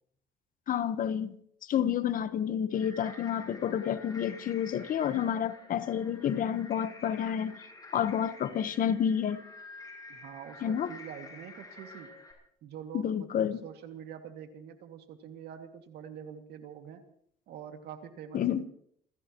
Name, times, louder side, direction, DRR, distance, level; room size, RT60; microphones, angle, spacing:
voice 1, 0.7-7.6 7.9-9.4 10.6-10.9 12.9-13.6 18.3-18.7, left 9 dB, 55° left, 1.2 m, -30 dB
sound 1, 2.7-12.3, left 2 dB, 20° left, 6.7 m, -50 dB
voice 2, 10.1-12.1 12.6-17.0 17.5-18.7, right 8 dB, 75° right, 2.4 m, -45 dB
28.5 x 16.0 x 3.1 m
cardioid pair, 110°, 17 cm